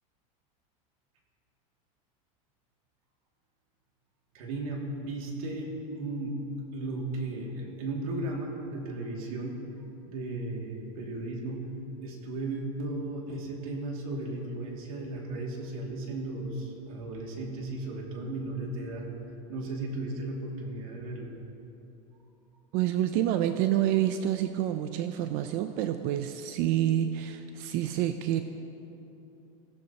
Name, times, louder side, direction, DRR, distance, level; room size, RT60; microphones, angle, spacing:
voice 1, 4.3-6.4 6.7-9.6 10.1-11.6 12.0-19.0 19.5-21.3, right 2 dB, 85° right, -1 dB, 2.7 m, -35 dB
voice 2, 22.7-28.4, right 11 dB, 55° right, 8 dB, 0.7 m, -28 dB
19.5 x 16.0 x 3.0 m, 3.0 s
supercardioid pair, 130°, 18 cm